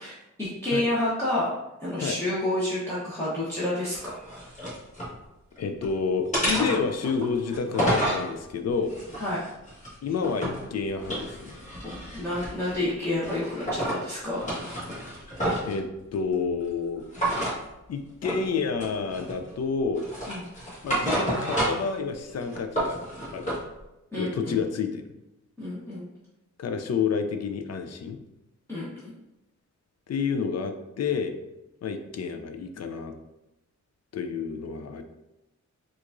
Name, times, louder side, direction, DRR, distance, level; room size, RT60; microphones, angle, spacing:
voice 1, 0.0-1.5 1.8-4.1 9.2-9.4 11.8-14.4 20.3-20.4 24.1-24.6 25.6-26.1 28.7-29.1, left 1 dB, 10° left, -11 dB, 0.9 m, -29 dB
sound 1, 3.9-5.1 5.6-5.9 6.3-8.3 8.9-10.6 11.0-12.8 13.2-14.0 14.3-15.8 17.1-17.6 18.2-18.5 18.8-19.5 20.0-21.9 22.3-23.6, right 1 dB, 25° left, 1.4 m, -30 dB
voice 2, 5.6-8.9 10.0-11.7 15.7-17.1 17.9-20.1 20.8-23.0 23.3-23.6 24.2-25.1 26.6-28.2 30.1-31.4 31.8-33.2 34.1-35.0, left 5 dB, 60° left, 7 dB, 0.4 m, -29 dB
4.5 x 2.5 x 2.5 m, 0.95 s
wide cardioid pair, 100°, 30 cm